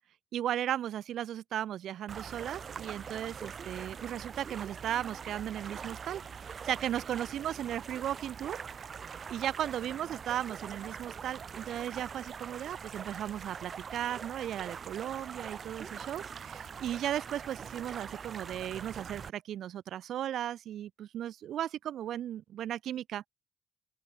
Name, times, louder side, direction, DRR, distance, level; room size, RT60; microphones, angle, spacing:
voice 1, 0.3-8.6 9.3-23.3, right 11 dB, 70° right, 7.5 m, -36 dB
sound 1, 2.1-19.3, right 6 dB, 40° right, 6.0 m, -43 dB
open air
cardioid pair, 150°, 0 cm